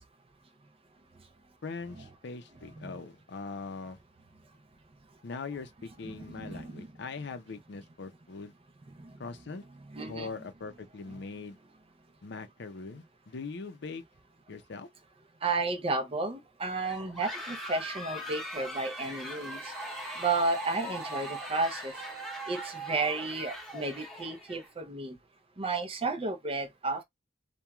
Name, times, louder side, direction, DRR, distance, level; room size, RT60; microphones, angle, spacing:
voice 1, 1.6-4.0 5.2-8.5 9.2-9.6 10.0-11.6 12.2-14.0 14.5-14.9, left 4 dB, 65° left, 0.5 m, -41 dB
voice 2, 6.0-6.9 9.0-9.2 9.9-10.3 15.4-19.7 20.2-21.9 22.5-25.2 25.6-27.0, right 3 dB, 30° right, 0.5 m, -32 dB
sound 1, 16.8-24.7, equal, ahead, 0.9 m, -41 dB
sound 2, 18.2-24.2, right 3 dB, 55° right, 0.8 m, -48 dB
3.0 x 2.2 x 2.3 m
head